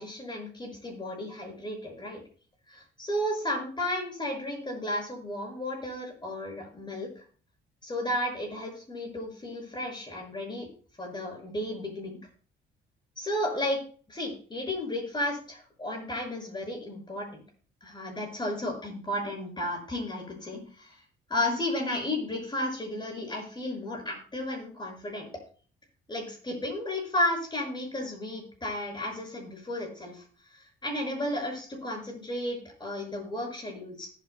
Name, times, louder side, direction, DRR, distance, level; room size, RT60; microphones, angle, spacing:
voice 1, 0.0-2.2 2.7-7.2 7.8-10.7 11.0-12.2 13.2-13.8 14.1-17.4 17.8-20.9 21.3-25.3 26.1-30.2 30.5-34.1, left 1 dB, 20° left, 0 dB, 6.3 m, -33 dB
19.5 x 8.6 x 2.2 m, 0.41 s
cardioid pair, 90°, 20 cm